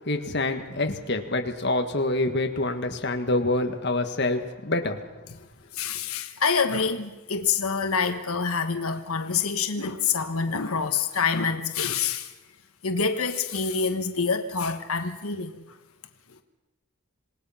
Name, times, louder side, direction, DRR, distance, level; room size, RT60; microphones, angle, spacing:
voice 1, 0.1-5.0, left 2 dB, 50° left, 1.7 m, -26 dB
voice 2, 5.7-12.3 12.8-15.6, left 5 dB, 85° left, 1.4 m, -26 dB
27.0 x 19.0 x 5.8 m
head